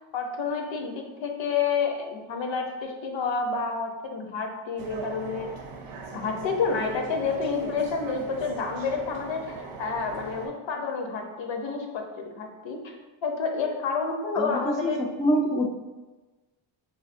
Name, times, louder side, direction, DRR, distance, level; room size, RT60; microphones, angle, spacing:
voice 1, 0.1-5.5 6.1-12.9 13.2-15.0, left 5 dB, 70° left, 3 dB, 0.7 m, -29 dB
sound 1, 4.8-10.5, right 4 dB, 80° right, 0.6 m, -40 dB
voice 2, 14.3-15.7, equal, 10° left, 0 dB, 0.3 m, -26 dB
4.0 x 2.6 x 2.5 m, 1.2 s
cardioid pair, 80°, 47 cm